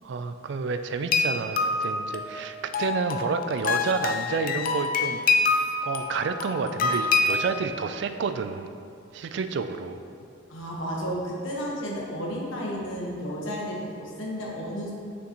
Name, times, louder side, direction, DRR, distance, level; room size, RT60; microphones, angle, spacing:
voice 1, 0.0-5.3 5.8-8.7 9.1-10.0, right 5 dB, 60° right, 9 dB, 0.3 m, -30 dB
sound 1, 1.1-7.6, left 4 dB, 45° left, 0.3 m, -26 dB
voice 2, 10.5-14.9, equal, 70° left, -3 dB, 1.2 m, -32 dB
6.3 x 5.8 x 3.0 m, 2.4 s
head